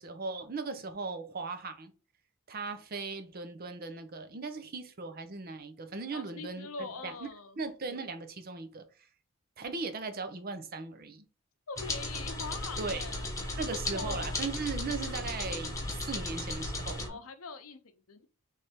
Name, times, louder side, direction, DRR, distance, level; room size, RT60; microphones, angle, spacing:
voice 1, 0.0-1.9 2.5-7.3 7.6-8.8 9.6-11.2 12.8-13.0 13.6-17.2, right 4 dB, 45° right, 0.6 m, -38 dB
voice 2, 6.1-7.6 11.7-13.3 13.8-14.4 15.1-15.2 17.1-18.3, left 4 dB, 90° left, 0.7 m, -43 dB
sound 1, 11.8-17.1, left 2 dB, 15° left, 1.0 m, -36 dB
3.5 x 3.2 x 4.2 m
head